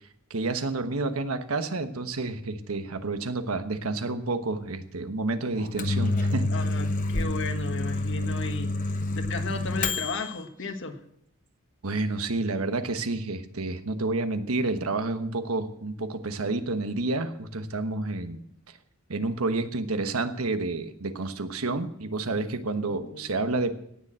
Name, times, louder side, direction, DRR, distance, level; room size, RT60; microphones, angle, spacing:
voice 1, 0.3-6.5 11.8-18.4 19.1-23.8, right 3 dB, 85° right, 9 dB, 1.2 m, -29 dB
Microwave oven, 5.5-10.4, left 2 dB, 40° left, 1.0 m, -28 dB
voice 2, 6.5-11.0 22.8-23.3, left 3 dB, 60° left, 6 dB, 1.6 m, -35 dB
17.5 x 6.9 x 7.5 m, 0.74 s
head